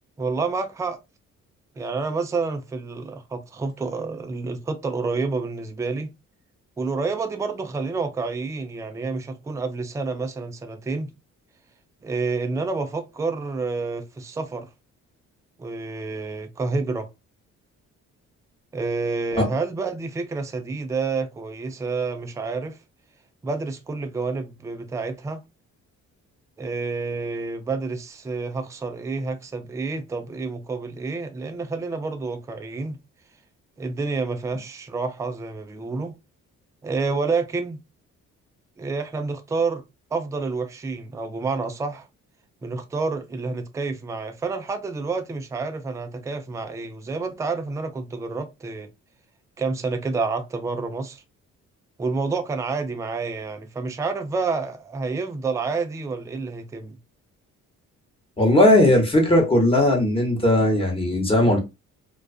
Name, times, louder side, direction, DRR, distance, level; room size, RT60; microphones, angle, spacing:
voice 1, 0.2-1.0 1.8-6.1 6.8-11.1 12.0-14.7 15.6-17.1 18.7-22.8 23.4-25.4 26.6-33.0 33.8-36.1 36.8-37.8 38.8-39.8 40.1-42.1 42.6-48.9 49.6-51.2 52.0-57.0, right 4 dB, 10° right, 0.3 m, -29 dB
voice 2, 58.4-61.6, left 1 dB, 20° left, 1.0 m, -18 dB
2.3 x 2.3 x 2.3 m
cardioid pair, 90°, 30 cm